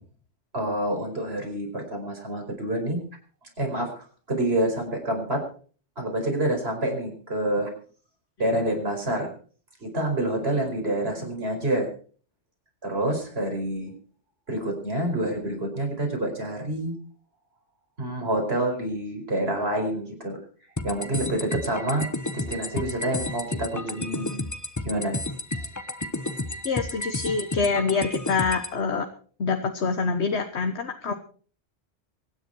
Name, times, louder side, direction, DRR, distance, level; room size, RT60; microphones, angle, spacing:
voice 1, 0.5-3.0 3.6-5.5 6.0-7.7 8.4-9.3 9.8-11.9 12.8-13.9 14.5-16.9 18.0-20.4 20.8-22.1 22.3-24.5 24.8-25.2, right 1 dB, 60° right, 2 dB, 5.2 m, -27 dB
sound 1, 20.8-28.7, left 2 dB, 15° left, 1.0 m, -32 dB
voice 2, 26.6-29.1 29.4-31.1, left 4 dB, 65° left, 6 dB, 1.5 m, -26 dB
24.0 x 9.9 x 4.6 m, 0.43 s
omnidirectional pair, 1.2 m